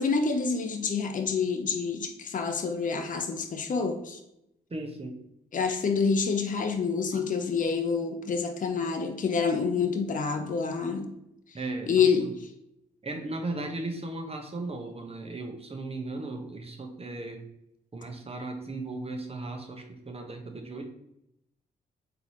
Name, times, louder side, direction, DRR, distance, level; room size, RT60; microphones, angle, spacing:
voice 1, 0.0-4.2 5.5-11.1 11.9-12.5, left 5 dB, 45° left, 5 dB, 0.6 m, -27 dB
voice 2, 4.7-5.2 7.1-7.2 11.5-11.9 12.2-12.3 13.0-17.4 17.9-20.9, right 2 dB, 30° right, 3 dB, 0.9 m, -36 dB
3.9 x 2.8 x 3.0 m, 0.81 s
hypercardioid pair, 45°, 19 cm